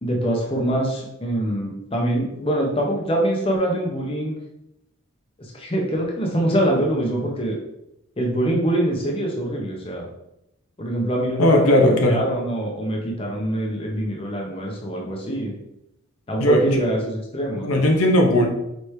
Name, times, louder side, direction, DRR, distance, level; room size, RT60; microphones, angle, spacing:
voice 1, 0.0-4.3 5.4-7.6 8.2-10.0 10.8-15.5 16.3-17.8, right 1 dB, 25° left, -1 dB, 0.7 m, -24 dB
voice 2, 11.4-12.2 16.4-16.6 17.6-18.5, left 1 dB, 80° left, 2 dB, 0.8 m, -17 dB
4.6 x 3.1 x 3.2 m, 0.84 s
head